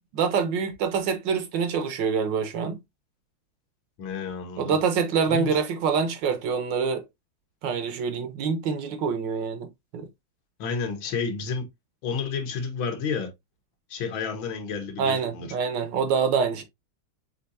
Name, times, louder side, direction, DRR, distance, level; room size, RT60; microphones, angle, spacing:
voice 1, 0.1-2.8 4.6-7.0 7.6-9.7 9.9-10.1 15.0-16.6, right 6 dB, 70° right, 1.3 m, -25 dB
voice 2, 4.0-4.8 5.3-5.6 10.6-11.7 12.0-13.3 13.9-15.5, left 5 dB, 80° left, 1.7 m, -31 dB
4.5 x 3.7 x 2.6 m
omnidirectional pair, 2.2 m